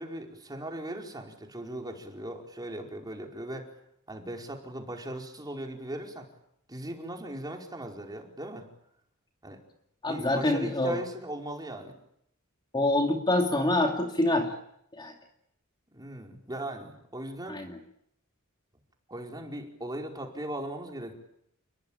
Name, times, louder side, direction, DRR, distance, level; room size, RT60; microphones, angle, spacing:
voice 1, 0.0-3.7 4.1-6.3 6.7-8.7 9.4-9.6 10.1-11.9 15.9-17.6 19.1-21.1, right 1 dB, 20° right, 2 dB, 4.8 m, -38 dB
voice 2, 10.0-11.0 12.7-14.5 14.9-15.1 17.5-17.8, left 1 dB, 20° left, 3 dB, 2.7 m, -26 dB
30.0 x 22.0 x 8.9 m, 0.75 s
head